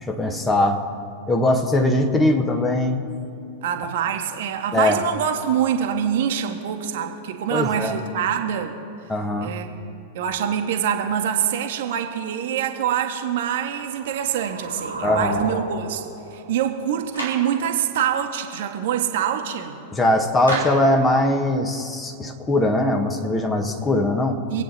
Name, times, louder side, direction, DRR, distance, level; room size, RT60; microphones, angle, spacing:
voice 1, 0.0-0.8 1.3-3.0 4.7-5.0 7.5-8.0 9.1-9.5 15.0-15.4 19.9-24.4, left 1 dB, 15° left, 4 dB, 1.4 m, -21 dB
voice 2, 3.6-8.8 9.4-9.8 10.1-16.0 16.3-19.8 24.5-24.6, right 9 dB, 55° right, 5 dB, 1.3 m, -25 dB
sound 1, 13.5-17.5, right 2 dB, 80° right, 1.9 m, -33 dB
Clapping, 17.1-17.5 20.5-20.9, right 2 dB, 80° left, 3.1 m, -28 dB
26.5 x 8.8 x 4.1 m, 2.7 s
figure-of-eight pair, 90°, 0 cm